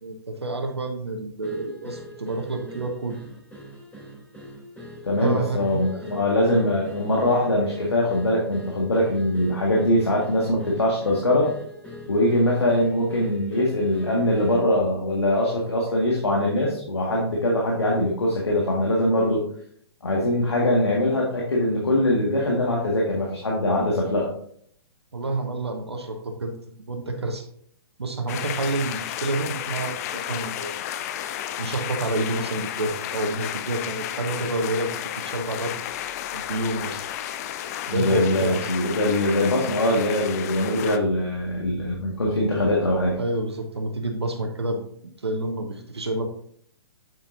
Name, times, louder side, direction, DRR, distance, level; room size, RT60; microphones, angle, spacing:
voice 1, 0.0-3.2 5.2-5.8 25.1-26.5 26.9-27.4 28.0-30.8 31.6-35.7 36.3-37.0 37.9-38.7 43.2-44.8 45.2-46.3, right 2 dB, 80° right, 4 dB, 1.0 m, -28 dB
sound 1, 1.4-14.7, equal, 10° left, 3.0 m, -42 dB
voice 2, 5.0-11.5 12.1-19.4 20.0-24.3 37.9-43.2, left 1 dB, 80° left, -3 dB, 1.8 m, -22 dB
applause medium, 28.3-41.0, left 11 dB, 40° left, 0.5 m, -32 dB
7.6 x 7.0 x 2.6 m, 0.64 s
figure-of-eight pair, 120°, 14 cm